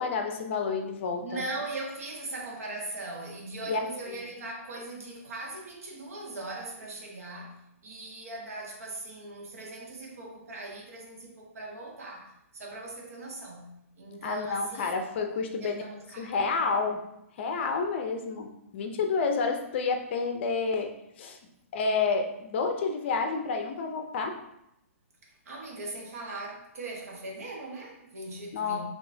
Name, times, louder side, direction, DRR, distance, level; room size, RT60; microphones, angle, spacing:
voice 1, 0.0-1.4 3.7-3.8 4.1-4.2 14.2-15.8 16.2-17.0 17.4-20.9 21.2-21.4 21.7-24.3 28.5-28.8, left 4 dB, 50° left, 5 dB, 0.5 m, -29 dB
voice 2, 1.2-14.9 15.5-16.3 25.2-28.8, right 2 dB, 75° right, -1 dB, 1.3 m, -40 dB
5.3 x 2.9 x 2.7 m, 0.82 s
hypercardioid pair, 145°, 8 cm